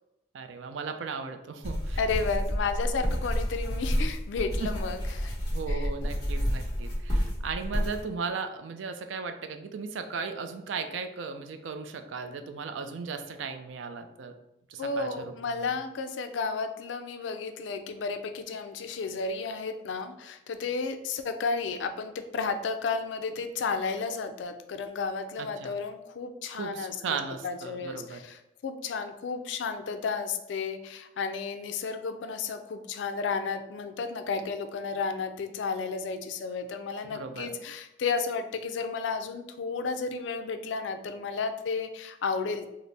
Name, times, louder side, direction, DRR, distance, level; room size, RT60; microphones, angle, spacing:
voice 1, 0.3-2.0 4.6-4.7 5.5-14.3 14.7-15.7 25.4-25.8 26.5-28.2 37.1-37.5, right 5 dB, 85° right, 8 dB, 0.4 m, -36 dB
sound 1, 1.6-8.0, equal, 20° left, 1.1 m, -30 dB
voice 2, 2.0-5.3 5.7-5.9 14.8-27.0 27.4-42.7, left 4 dB, 80° left, 8 dB, 0.4 m, -32 dB
4.1 x 2.0 x 3.2 m, 0.90 s
head